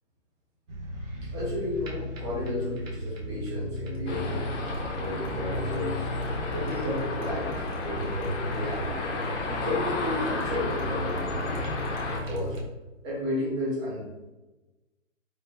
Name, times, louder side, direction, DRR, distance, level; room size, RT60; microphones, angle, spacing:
sound 1, 0.7-12.6, left 1 dB, 75° right, 0.8 m, -36 dB
voice 1, 1.2-4.6 4.9-6.0 6.5-9.1 9.6-11.7 12.0-12.6 13.0-14.1, left 1 dB, 20° right, -6 dB, 0.7 m, -32 dB
sound 2, 4.1-12.2, left 2 dB, 65° left, 0.6 m, -33 dB
3.1 x 2.3 x 2.2 m, 1.1 s
hypercardioid pair, 155°, 39 cm